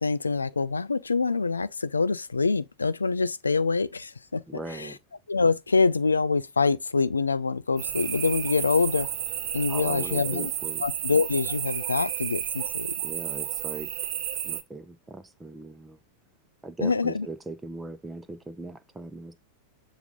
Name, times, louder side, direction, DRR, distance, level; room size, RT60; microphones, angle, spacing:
voice 1, 0.0-4.4 4.7-4.9 5.3-9.1 9.5-10.5 10.8-12.9 16.8-17.3, left 4 dB, 75° left, 0.3 m, -25 dB
voice 2, 4.5-5.0 9.7-10.8 13.0-13.9 14.4-16.0 16.6-19.3, right 2 dB, 10° right, 0.7 m, -39 dB
sound 1, 7.8-14.6, right 11 dB, 45° right, 0.8 m, -32 dB
7.2 x 2.5 x 5.3 m
figure-of-eight pair, 90°, 0 cm